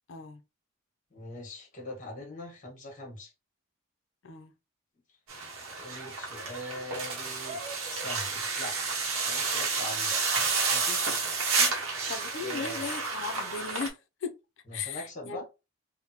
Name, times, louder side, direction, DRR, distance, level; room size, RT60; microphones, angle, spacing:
voice 1, 0.1-0.4 4.2-4.5 12.1-14.4 14.7-15.4, left 5 dB, 65° left, 0.5 m, -37 dB
voice 2, 1.1-3.3 5.7-7.6 7.9-8.8 9.2-10.2 10.7-11.2 11.5-12.0 12.4-12.8 14.7-15.4, left 1 dB, 35° left, 1.3 m, -42 dB
sound 1, 5.3-13.9, right 4 dB, 85° right, 0.8 m, -30 dB
3.4 x 2.1 x 2.8 m
head